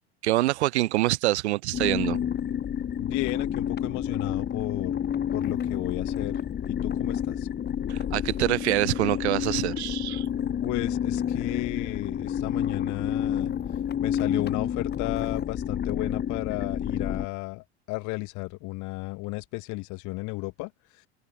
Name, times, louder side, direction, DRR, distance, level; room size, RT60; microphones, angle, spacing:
voice 1, 0.2-2.2 7.9-10.3, right 17 dB, 70° right, 6.7 m, -25 dB
sound 1, 1.7-17.3, left 9 dB, 30° left, 1.3 m, -29 dB
voice 2, 3.0-5.0 5.3-6.3 6.7-7.5 10.6-13.6 14.0-20.7, left 25 dB, 55° left, 7.8 m, -34 dB
open air
figure-of-eight pair, 75°, 35 cm